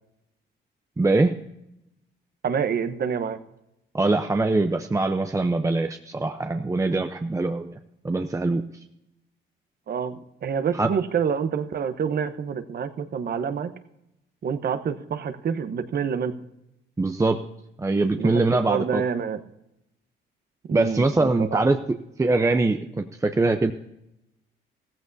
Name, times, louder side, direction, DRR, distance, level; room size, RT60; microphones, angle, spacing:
voice 1, 1.0-1.4 3.9-7.8 8.0-8.6 10.7-10.9 17.0-17.4 17.8-19.0 20.7-21.8 22.2-23.7, right 2 dB, 15° right, 7 dB, 0.6 m, -23 dB
voice 2, 2.4-3.4 9.9-13.7 14.4-16.3 18.2-18.4 18.7-19.4 20.7-21.6, right 7 dB, 50° right, 11 dB, 1.0 m, -27 dB
15.5 x 14.5 x 2.7 m, 0.86 s
cardioid pair, 90°, 20 cm